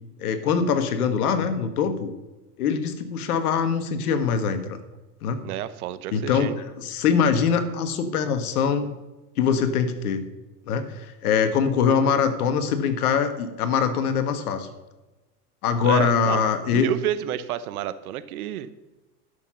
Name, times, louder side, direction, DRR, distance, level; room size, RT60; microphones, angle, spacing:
voice 1, 0.2-2.1 2.6-4.8 5.2-5.4 6.1-8.9 9.4-10.2 10.7-14.7 15.6-16.9, left 6 dB, 70° left, 9 dB, 1.6 m, -23 dB
voice 2, 5.4-6.6 15.8-18.7, right 12 dB, 65° right, 14 dB, 1.0 m, -30 dB
12.0 x 6.8 x 5.7 m, 1.1 s
hypercardioid pair, 105°, 46 cm